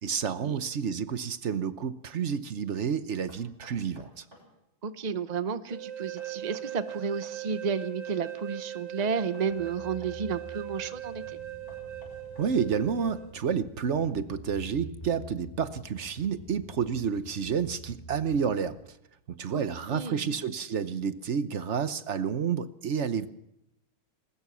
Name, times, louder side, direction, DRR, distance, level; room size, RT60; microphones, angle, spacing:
voice 1, 0.0-4.2 12.4-18.8 19.3-23.3, right 7 dB, 50° right, 12 dB, 0.9 m, -30 dB
Knock, 3.3-4.5 6.2-7.4 9.0-10.2 11.7-13.1, equal, 35° right, 7.0 m, -54 dB
voice 2, 4.8-11.4 19.5-19.6 19.9-20.3, right 6 dB, 90° right, 12 dB, 0.3 m, -32 dB
sound 1, 5.7-13.3, right 12 dB, 75° right, 3.3 m, -40 dB
sound 2, 9.4-18.8, equal, 25° left, 3.1 m, -48 dB
21.5 x 20.0 x 6.2 m, 0.83 s
omnidirectional pair, 2.1 m